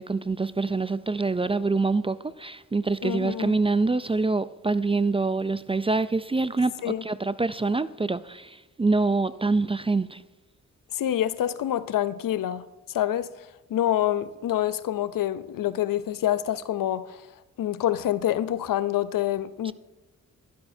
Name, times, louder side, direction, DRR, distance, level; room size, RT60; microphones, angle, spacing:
voice 1, 0.0-10.2 19.6-19.7, right 3 dB, 20° right, 0.3 m, -25 dB
voice 2, 3.0-3.6 6.8-7.0 10.9-13.3 13.7-17.2 17.6-19.7, left 12 dB, 80° left, 0.5 m, -27 dB
12.0 x 12.0 x 2.7 m
cardioid pair, 55°, 33 cm